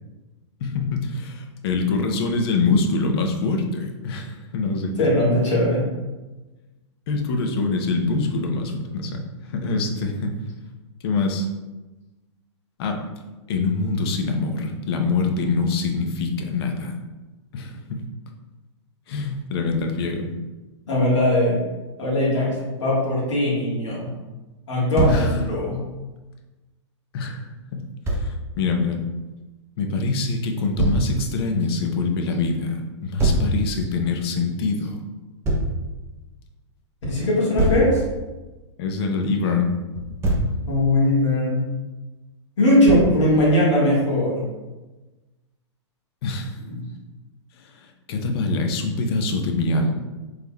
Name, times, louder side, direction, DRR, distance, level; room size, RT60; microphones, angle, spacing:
voice 1, 0.6-4.9 5.2-5.3 7.1-9.2 9.5-10.4 11.0-11.5 12.8-13.0 13.5-16.9 17.5-17.8 19.1-20.3 25.0-25.3 27.1-27.4 27.7-27.8 28.2-29.0 29.8-35.0 38.8-39.7 46.2-46.5 48.1-49.9, left 3 dB, 55° left, 4 dB, 0.6 m, -24 dB
voice 2, 5.0-5.9 20.9-21.6 22.0-22.5 22.8-24.1 24.7-25.8 37.1-38.0 40.7-41.6 42.6-44.4 46.7-46.9, left 1 dB, 70° left, -6 dB, 1.4 m, -20 dB
Thump thud, 24.9-25.3 28.0-28.3 30.8-31.1 33.2-33.5 35.4-35.7 37.6-37.9 39.9-40.5 42.9-43.2, right 1 dB, 15° right, 0.6 m, -21 dB
3.4 x 3.2 x 2.2 m, 1.1 s
hypercardioid pair, 115°, 15 cm